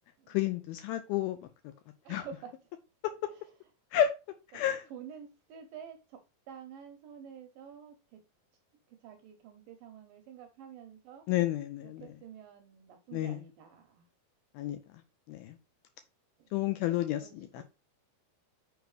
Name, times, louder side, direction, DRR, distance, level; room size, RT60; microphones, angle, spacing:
voice 1, 0.3-1.5 2.1-2.2 3.0-3.1 3.9-4.1 4.5-4.8 11.3-12.1 13.1-13.4 14.5-14.8 15.3-15.6 16.5-17.6, left 12 dB, 80° left, 2.2 m, -31 dB
voice 2, 2.0-2.6 4.5-4.6 4.9-8.2 8.9-11.3 11.8-14.0 16.4-16.6 17.2-17.6, right 8 dB, 75° right, 2.1 m, -49 dB
6.4 x 5.0 x 4.8 m
omnidirectional pair, 4.9 m